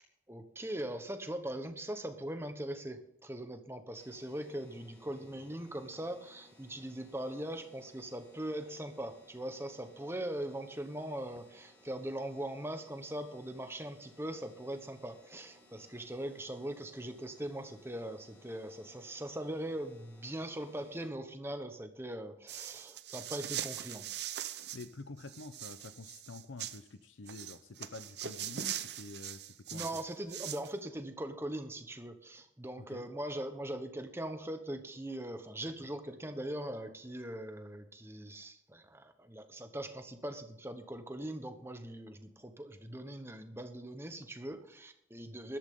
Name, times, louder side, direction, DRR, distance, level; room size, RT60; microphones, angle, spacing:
voice 1, 0.3-24.1 29.7-45.6, right 1 dB, 15° right, 8 dB, 1.1 m, -41 dB
sound 1, 3.9-21.1, left 1 dB, 10° left, 3.7 m, -62 dB
sound 2, 22.5-24.9 25.2-26.8 27.3-30.7, right 10 dB, 55° right, 0.7 m, -41 dB
voice 2, 24.7-29.9 32.9-33.0, left 3 dB, 85° left, 11 dB, 0.7 m, -48 dB
14.0 x 12.0 x 3.8 m, 0.77 s
head